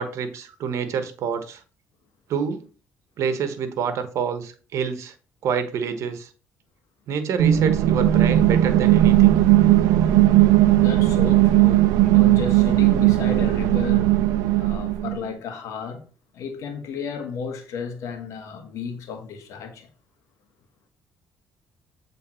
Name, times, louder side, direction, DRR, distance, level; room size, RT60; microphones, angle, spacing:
voice 1, 0.0-1.6 2.3-2.6 3.2-5.1 5.4-6.3 7.1-9.4, right 6 dB, 65° right, 1.1 m, -27 dB
sound 1, 7.4-15.2, right 14 dB, 85° right, 0.4 m, -17 dB
voice 2, 10.6-14.1 14.6-16.0 16.3-19.9, left 6 dB, 75° left, 1.4 m, -33 dB
7.6 x 3.4 x 4.4 m
supercardioid pair, 65°, 5 cm